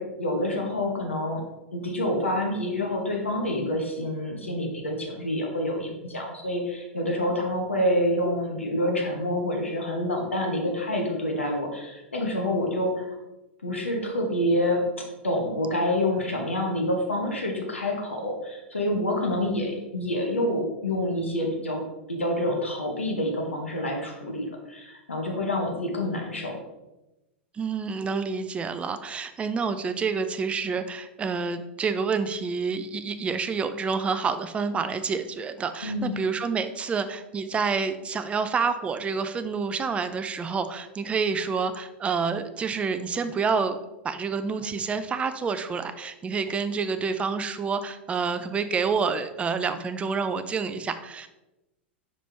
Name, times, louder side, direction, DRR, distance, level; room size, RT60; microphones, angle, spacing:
voice 1, 0.0-1.4 1.7-13.2 13.6-14.8 15.2-21.8 22.1-26.6 35.8-36.1, left 1 dB, 85° left, 0 dB, 1.1 m, -27 dB
voice 2, 27.5-43.8 44.0-51.3, right 5 dB, 20° right, 10 dB, 0.5 m, -28 dB
5.6 x 5.0 x 3.4 m, 1.0 s
figure-of-eight pair, 95°, 6 cm